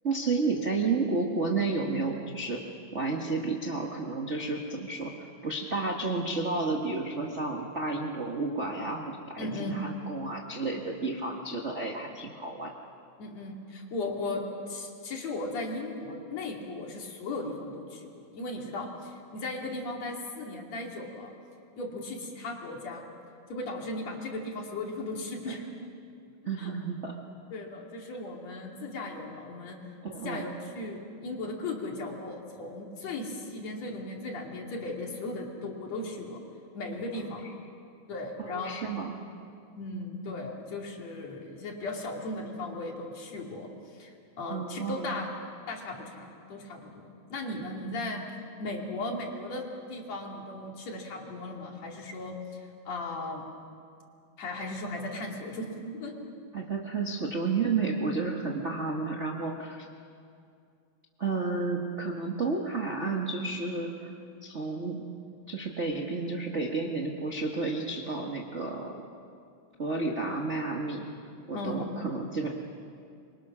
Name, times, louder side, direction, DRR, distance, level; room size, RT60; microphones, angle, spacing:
voice 1, 0.0-2.6 2.9-5.1 5.4-12.7 25.5-25.6 26.4-27.1 30.0-30.4 38.4-39.2 44.5-45.1 56.5-59.8 61.2-64.1 64.4-65.1 65.5-69.0 69.8-71.1 71.4-72.5, right 3 dB, 70° right, -1 dB, 0.6 m, -31 dB
voice 2, 9.4-9.8 13.2-21.3 21.8-23.1 23.5-25.6 26.6-26.7 27.5-29.8 30.2-36.4 36.7-37.5 38.1-38.8 39.8-45.3 45.7-48.2 48.6-53.5 54.4-56.2 71.5-71.9, left 2 dB, 55° left, 0 dB, 3.6 m, -37 dB
27.0 x 24.0 x 6.2 m, 2.4 s
omnidirectional pair, 3.9 m